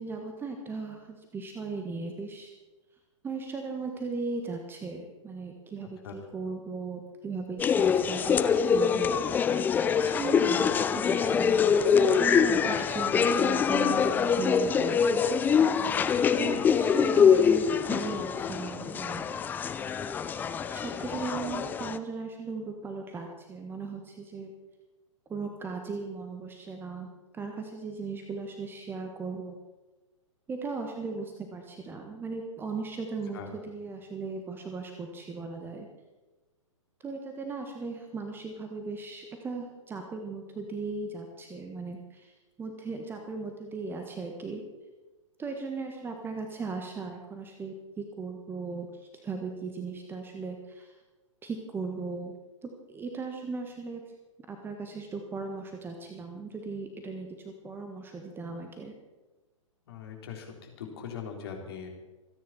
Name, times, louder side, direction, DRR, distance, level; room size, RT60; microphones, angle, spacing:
voice 1, 0.0-2.5 3.2-9.1 9.4-9.5 9.9-15.2 16.4-19.2 20.7-24.5 25.3-29.6 30.5-35.9 37.0-42.3 42.6-44.6 45.4-48.9 49.2-50.9 51.4-52.3 52.6-54.0 54.5-58.9, right 4 dB, 15° right, 4 dB, 1.4 m, -37 dB
sound 1, 7.6-22.0, left 7 dB, 10° left, 0.5 m, -24 dB
voice 2, 16.1-16.7 33.3-33.5 59.9-61.9, left 7 dB, 50° left, 2 dB, 3.5 m, -41 dB
26.5 x 10.0 x 4.3 m, 1.2 s
figure-of-eight pair, 110°, 17 cm